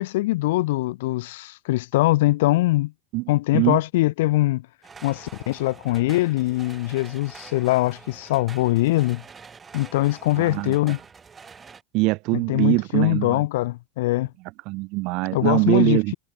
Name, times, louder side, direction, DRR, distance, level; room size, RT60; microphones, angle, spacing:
voice 1, 0.0-2.9 3.3-4.7 5.0-9.2 9.7-11.0 12.3-14.3 15.3-16.1, left 18 dB, 60° left, 1.2 m, -22 dB
sound 1, 4.8-11.8, right 5 dB, 20° right, 3.6 m, -46 dB
voice 2, 10.4-10.7 11.9-13.4 14.7-16.1, right 24 dB, 50° right, 1.2 m, -22 dB
figure-of-eight pair, 75°, 0 cm